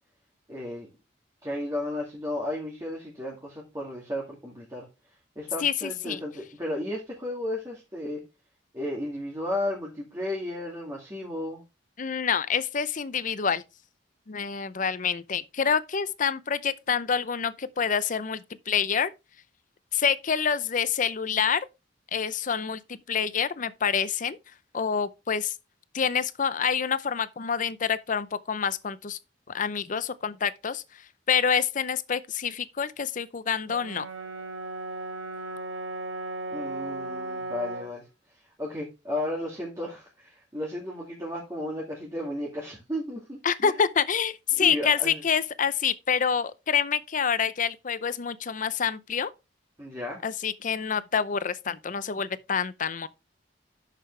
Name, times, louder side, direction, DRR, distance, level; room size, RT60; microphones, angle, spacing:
voice 1, 0.5-0.9 1.4-4.9 5.4-8.2 8.7-11.6 36.5-38.1 38.6-43.8 44.6-45.2 49.8-50.2, left 1 dB, 20° right, 2.3 m, -34 dB
voice 2, 5.6-6.2 12.0-13.6 14.3-19.1 19.9-21.6 22.1-24.4 24.7-25.5 25.9-29.2 29.5-30.8 31.3-34.1 43.4-49.3 50.2-53.1, left 7 dB, 45° left, 0.6 m, -27 dB
Brass instrument, 33.7-38.0, right 2 dB, 90° right, 1.7 m, -36 dB
10.0 x 6.7 x 3.3 m
head